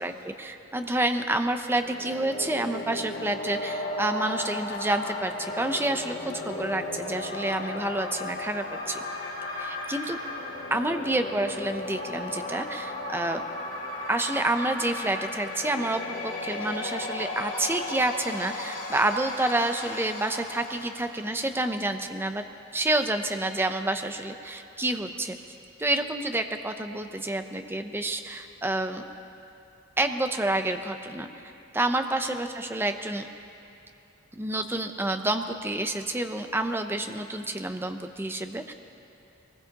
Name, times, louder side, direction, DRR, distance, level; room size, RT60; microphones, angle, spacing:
voice 1, 0.0-9.0 9.6-10.2 10.7-13.4 14.1-22.4 22.7-25.4 25.8-29.0 30.0-31.3 31.7-33.3 34.3-38.7, right 2 dB, 10° right, 7 dB, 0.6 m, -29 dB
sound 1, 1.7-21.6, left 2 dB, 85° left, 2.7 m, -35 dB
23.0 x 19.5 x 2.9 m, 2.9 s
head